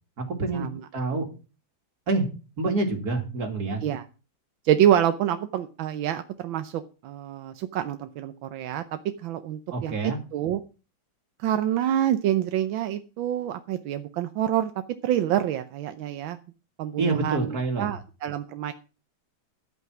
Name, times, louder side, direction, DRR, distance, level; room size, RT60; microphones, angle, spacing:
voice 1, 0.2-1.2 2.1-2.3 2.6-3.8 9.7-10.2 17.0-17.9, right 3 dB, 50° right, 4 dB, 2.9 m, -27 dB
voice 2, 4.6-10.6 11.4-14.7 15.0-16.4 16.8-18.7, right 11 dB, 85° right, 9 dB, 1.5 m, -27 dB
11.5 x 8.2 x 6.0 m, 0.33 s
omnidirectional pair, 2.1 m